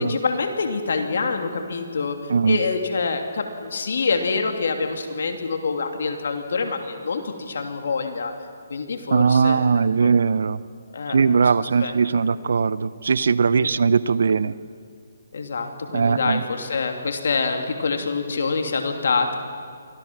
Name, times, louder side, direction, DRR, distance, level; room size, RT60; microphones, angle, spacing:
voice 1, 0.0-2.2 2.5-8.3 8.7-10.1 10.9-12.2 13.6-13.9 15.3-19.4, left 4 dB, 70° left, 5 dB, 2.8 m, -26 dB
voice 2, 9.1-10.6 11.1-14.5 15.9-16.4, right 5 dB, 70° right, 18 dB, 0.7 m, -19 dB
24.0 x 16.5 x 7.5 m, 2.2 s
hypercardioid pair, 155°, 0 cm